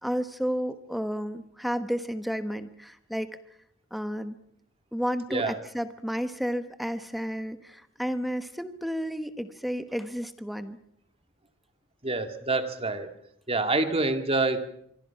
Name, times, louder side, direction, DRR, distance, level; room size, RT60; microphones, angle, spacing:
voice 1, 0.0-3.4 3.9-4.4 4.9-10.8, equal, ahead, 10 dB, 1.2 m, -32 dB
voice 2, 12.0-13.1 13.5-14.6, right 3 dB, 30° right, 7 dB, 2.0 m, -26 dB
25.5 x 24.5 x 5.9 m, 0.70 s
head